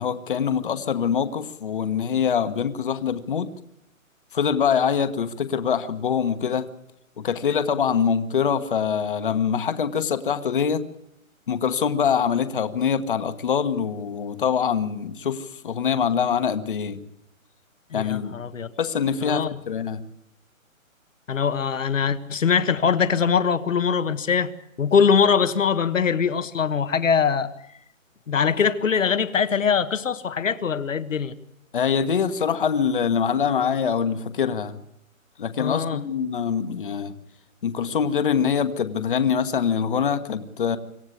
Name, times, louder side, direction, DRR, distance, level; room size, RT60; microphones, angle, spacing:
voice 1, 0.0-3.5 4.3-6.7 7.2-10.8 11.5-17.0 17.9-18.3 18.8-20.0 31.7-34.8 35.4-37.2 37.6-40.8, left 7 dB, 40° left, 11 dB, 1.4 m, -24 dB
voice 2, 17.9-18.7 19.2-19.6 21.3-24.5 24.8-27.5 28.3-31.4 35.6-36.0, left 6 dB, 65° left, 11 dB, 1.4 m, -22 dB
26.5 x 15.0 x 8.2 m, 0.78 s
hypercardioid pair, 170°, 41 cm